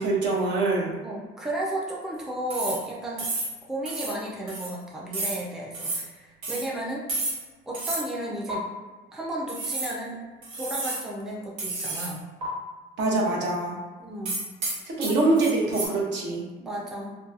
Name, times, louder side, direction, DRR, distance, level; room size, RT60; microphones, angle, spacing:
voice 1, 0.0-0.9 13.0-13.8 14.9-16.4, right 2 dB, 60° right, -3 dB, 0.8 m, -24 dB
voice 2, 1.0-3.3 3.7-7.0 7.7-8.7 9.1-10.2 10.5-12.2 14.0-14.4 15.0-15.1 16.6-17.1, right 1 dB, ahead, -4 dB, 0.4 m, -33 dB
sound 1, 2.5-2.9 3.2-3.6 3.9-4.2 4.5-4.7 5.1-5.4 5.7-6.1 6.4-6.7 7.1-7.5 7.7-8.1 8.5-8.6 9.5-10.0 10.4-11.1 11.6-12.1 12.4-12.5 14.3-15.9, right 2 dB, 85° right, 1.0 m, -31 dB
2.7 x 2.2 x 2.4 m, 1.3 s
cardioid pair, 105°, 20 cm